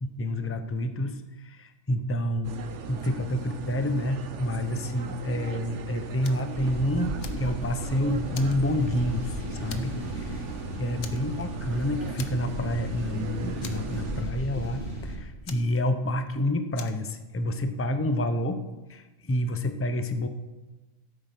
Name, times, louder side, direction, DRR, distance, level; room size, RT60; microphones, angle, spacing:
voice 1, 0.0-2.5 2.9-10.5 10.8-18.6 18.9-20.3, left 1 dB, 15° left, 8 dB, 0.5 m, -29 dB
sound 1, 2.4-14.2, right 6 dB, 65° right, 1.1 m, -38 dB
Fire, 6.2-6.5 6.9-7.9 8.3-9.3 9.7-10.1 10.4-10.5 11.0-11.7 12.2-12.7 13.0-13.1 13.6-14.4 15.5-16.3 16.7-17.1, left 7 dB, 75° left, 1.3 m, -44 dB
sound 2, 6.6-15.2, equal, 30° left, 3.6 m, -36 dB
13.0 x 8.6 x 5.9 m, 1.1 s
omnidirectional pair, 1.3 m